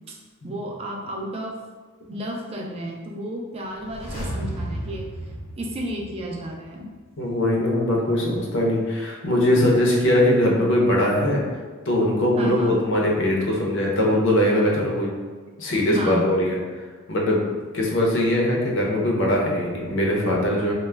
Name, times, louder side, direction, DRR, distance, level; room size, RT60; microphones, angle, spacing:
voice 1, 0.4-1.5 2.1-5.0 5.6-6.9 9.6-9.7 12.4-12.8 15.9-16.4, right 1 dB, 25° right, 0 dB, 0.3 m, -32 dB
sound 1, 3.7-6.6 6.9-7.0, right 1 dB, 85° left, 0.9 m, -33 dB
voice 2, 7.2-11.4 11.9-15.1 15.6-16.6 17.1-17.4 17.7-20.7, left 1 dB, 60° left, -2 dB, 0.6 m, -21 dB
2.2 x 2.0 x 3.2 m, 1.4 s
head